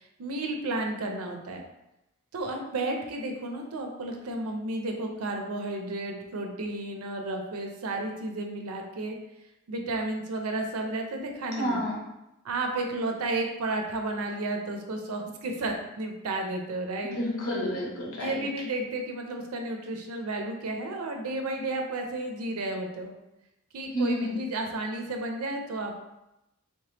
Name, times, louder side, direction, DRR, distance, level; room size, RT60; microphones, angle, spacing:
voice 1, 0.0-1.6 2.3-9.2 9.7-11.8 12.4-17.2 18.2-23.1 23.7-26.0, right 2 dB, 75° right, 3 dB, 0.5 m, -32 dB
voice 2, 11.6-12.0 17.1-18.4 23.9-24.4, equal, 70° left, -3 dB, 1.0 m, -29 dB
3.2 x 2.8 x 3.2 m, 0.90 s
head